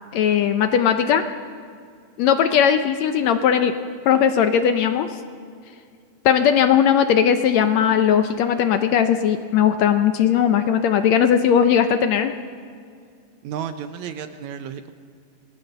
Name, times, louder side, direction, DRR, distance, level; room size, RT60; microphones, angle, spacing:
voice 1, 0.1-1.2 2.2-3.7 4.1-5.1 6.3-12.3, left 8 dB, 70° left, 8 dB, 1.8 m, -18 dB
voice 2, 13.4-14.9, right 8 dB, 70° right, 9 dB, 2.0 m, -32 dB
27.0 x 19.0 x 6.8 m, 2.2 s
omnidirectional pair, 3.7 m